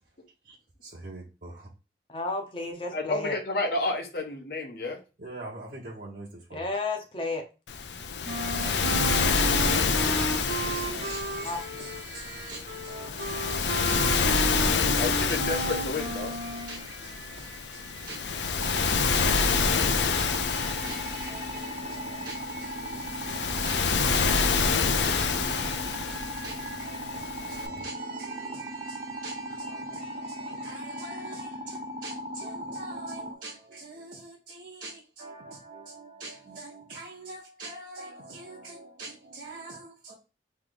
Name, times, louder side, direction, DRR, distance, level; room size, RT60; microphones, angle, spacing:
voice 1, 0.8-1.7 5.2-6.6 8.3-15.4 15.8-40.1, right 2 dB, 50° right, 0.8 m, -44 dB
voice 2, 2.1-3.4 6.5-7.4 11.4-11.6, left 3 dB, 30° left, 0.7 m, -32 dB
voice 3, 2.9-5.0 15.0-16.3, left 2 dB, 60° left, 0.9 m, -30 dB
Waves surf, 7.7-27.7, left 5 dB, 80° left, 0.5 m, -28 dB
Wind instrument woodwind instrument, 8.2-16.8, right 2 dB, 75° right, 0.9 m, -34 dB
sound 1, 18.6-33.3, right 1 dB, 35° right, 0.4 m, -38 dB
3.2 x 2.8 x 3.8 m
head